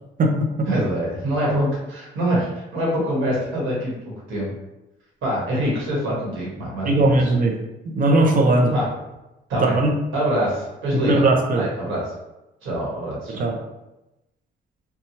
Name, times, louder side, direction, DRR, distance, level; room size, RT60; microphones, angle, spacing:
voice 1, 0.7-4.5 5.2-7.2 8.6-8.8 9.5-9.7 10.1-11.2 11.5-12.0 12.6-13.5, equal, 80° right, -5 dB, 1.3 m, -25 dB
voice 2, 6.8-7.6 7.9-8.7 9.6-9.9 10.9-11.7 13.3-13.6, right 2 dB, 45° right, 2 dB, 0.6 m, -18 dB
2.9 x 2.2 x 2.8 m, 0.95 s
cardioid pair, 90°, 20 cm